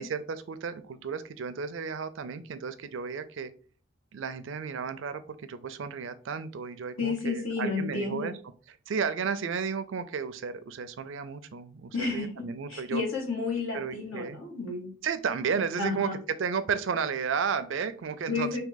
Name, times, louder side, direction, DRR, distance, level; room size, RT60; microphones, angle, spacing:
voice 1, 0.0-3.5 4.1-8.3 8.7-13.0 13.7-14.4 15.0-18.6, right 6 dB, 70° right, 11 dB, 0.4 m, -33 dB
voice 2, 7.0-8.3 11.9-12.3 12.7-14.9 15.8-16.1 18.3-18.6, left 4 dB, 85° left, -2 dB, 1.5 m, -31 dB
3.6 x 2.8 x 3.8 m, 0.42 s
head